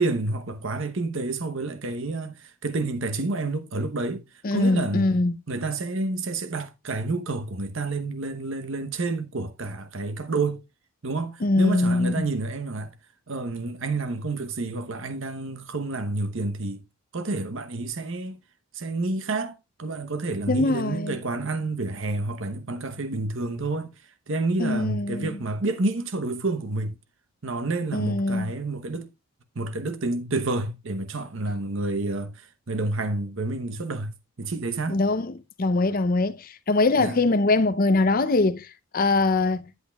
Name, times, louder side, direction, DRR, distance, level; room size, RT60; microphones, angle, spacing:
voice 1, 0.0-4.2 4.5-10.6 11.0-12.9 13.3-16.8 17.1-18.4 18.7-23.9 24.3-26.9 27.4-29.1 29.5-34.1 34.4-35.0 37.0-37.2, right 3 dB, 55° right, 0.9 m, -29 dB
voice 2, 4.4-5.3 11.4-12.3 20.5-21.2 24.6-25.4 27.9-28.5 34.9-38.7 38.9-39.6, left 2 dB, 40° left, 0.5 m, -22 dB
10.0 x 8.1 x 2.3 m
head